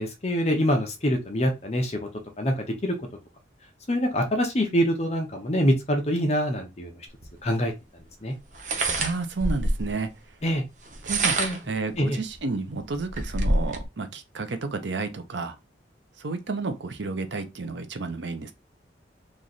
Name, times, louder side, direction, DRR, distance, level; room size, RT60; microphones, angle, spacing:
voice 1, 0.0-2.1 2.4-3.0 3.9-6.9 7.4-7.7 8.2-8.3 10.4-10.6 11.4-11.6 12.0-12.2, equal, 35° left, 0.7 m, -25 dB
sound 1, 7.2-7.3 8.5-9.9 10.9-11.7 12.3-12.4 12.8-13.9, right 2 dB, 40° right, 0.7 m, -26 dB
voice 2, 9.0-10.1 11.0-15.5 16.2-18.5, right 3 dB, 75° right, 0.7 m, -31 dB
3.1 x 2.5 x 3.9 m
head